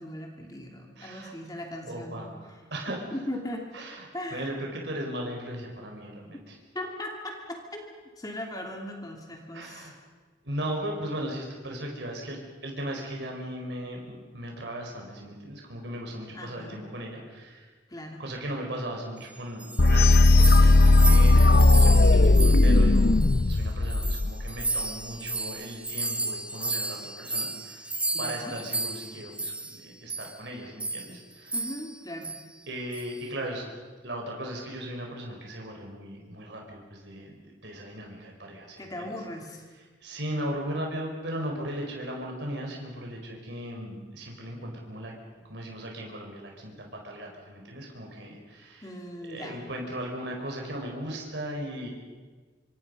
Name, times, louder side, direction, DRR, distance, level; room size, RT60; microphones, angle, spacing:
voice 1, 0.0-2.2 2.9-3.7 4.1-4.5 6.7-9.9 16.3-16.8 17.9-18.2 21.0-22.0 28.1-28.5 31.5-32.3 38.8-39.7 48.8-49.6, left 1 dB, 20° left, 2 dB, 2.7 m, -38 dB
voice 2, 1.0-1.3 1.9-3.0 3.7-4.1 4.3-6.5 9.5-9.9 10.4-17.7 18.2-27.9 28.2-31.5 32.7-33.7 34.0-37.3 37.6-39.1 40.0-45.1 45.5-48.9 49.3-51.9, right 1 dB, 65° right, 0 dB, 4.8 m, -37 dB
sound 1, 19.3-23.6 23.9-29.8 30.1-30.3 30.8-31.1 31.5-31.9 32.2-32.4 32.9-33.2, right 2 dB, 5° right, 1.1 m, -33 dB
sound 2, 19.8-24.7, left 2 dB, 55° left, 0.7 m, -17 dB
26.0 x 25.5 x 5.5 m, 1.4 s
head